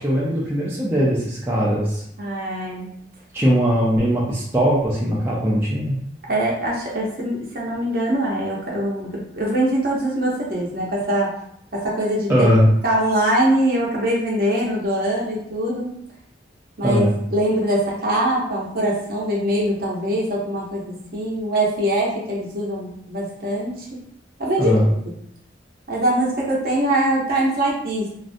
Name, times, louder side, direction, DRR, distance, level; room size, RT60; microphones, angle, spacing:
voice 1, 0.0-2.0 3.3-6.0 12.3-12.7 16.8-17.2 24.6-24.9, equal, 10° right, -7 dB, 0.4 m, -19 dB
voice 2, 2.2-2.9 6.3-11.3 11.7-12.5 12.8-15.9 16.8-17.0 17.3-20.8 21.1-23.9 24.4-24.7 25.9-28.1, right 1 dB, 55° right, -4 dB, 0.7 m, -22 dB
2.5 x 2.1 x 2.6 m, 0.72 s
head